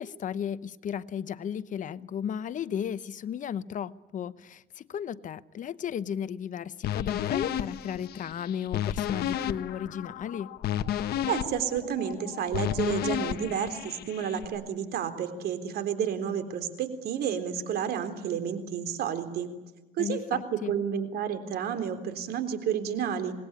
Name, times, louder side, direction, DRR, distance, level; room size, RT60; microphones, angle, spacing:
voice 1, 0.0-10.5 20.0-20.7, left 8 dB, 50° left, 0.9 m, -34 dB
sound 1, 6.8-14.4, left 10 dB, 70° left, 1.3 m, -32 dB
voice 2, 11.3-19.5 19.9-20.4 20.7-23.3, right 8 dB, 70° right, 3.7 m, -31 dB
26.5 x 20.5 x 9.8 m
cardioid pair, 110°, 17 cm